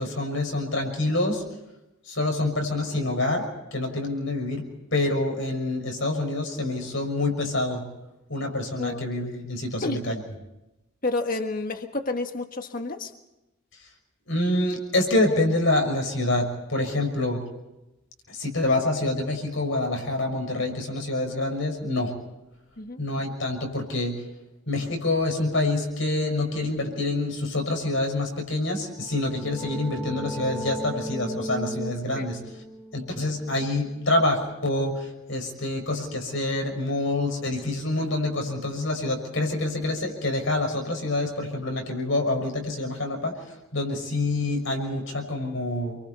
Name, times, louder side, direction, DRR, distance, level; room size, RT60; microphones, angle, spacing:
voice 1, 0.0-1.4 2.1-4.6 4.9-7.8 8.3-10.2 14.3-17.4 18.3-22.1 23.0-24.2 24.7-32.4 32.9-43.3 43.7-46.0, left 2 dB, 60° left, 3 dB, 6.1 m, -26 dB
voice 2, 9.8-10.2 11.0-13.1 22.8-23.0 32.2-32.3, left 2 dB, 40° left, 6 dB, 1.6 m, -30 dB
sound 1, 28.9-34.4, equal, ahead, 1.6 m, -37 dB
29.0 x 24.5 x 4.3 m, 0.96 s
head